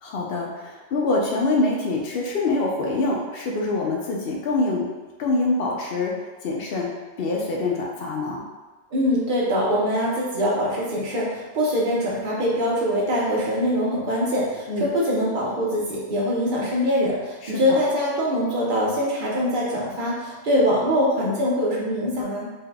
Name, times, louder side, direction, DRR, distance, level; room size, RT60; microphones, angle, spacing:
voice 1, 0.0-4.9 5.2-8.4 14.7-14.9 17.4-17.8, left 2 dB, 60° left, -1 dB, 0.7 m, -25 dB
voice 2, 8.9-22.5, equal, 50° right, -5 dB, 0.8 m, -23 dB
3.6 x 2.7 x 2.2 m, 1.2 s
omnidirectional pair, 1.3 m